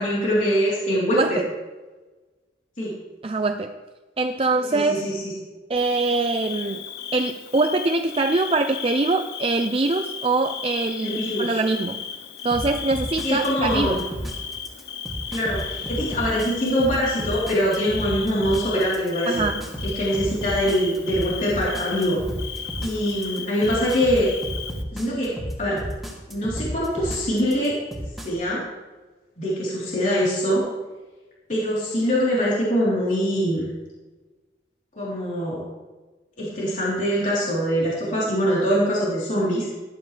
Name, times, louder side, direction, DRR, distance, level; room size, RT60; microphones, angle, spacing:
voice 1, 0.0-1.4 2.8-2.9 4.7-5.3 11.0-11.6 13.2-14.0 15.3-19.3 19.8-22.2 22.8-24.3 24.9-25.8 26.3-27.8 28.2-28.6 29.4-30.6 31.5-33.7 35.0-35.6 36.4-39.7, equal, 45° left, -7 dB, 3.7 m, -23 dB
voice 2, 3.2-3.7 4.2-5.0 5.7-6.8 7.1-12.0 12.4-14.0 19.3-19.6, right 3 dB, 30° right, 7 dB, 0.5 m, -23 dB
Bird / Cricket, 5.8-24.8, left 7 dB, 65° left, 0.9 m, -35 dB
sound 1, 12.5-28.3, equal, ahead, 2.6 m, -32 dB
18.5 x 12.0 x 3.4 m, 1.3 s
head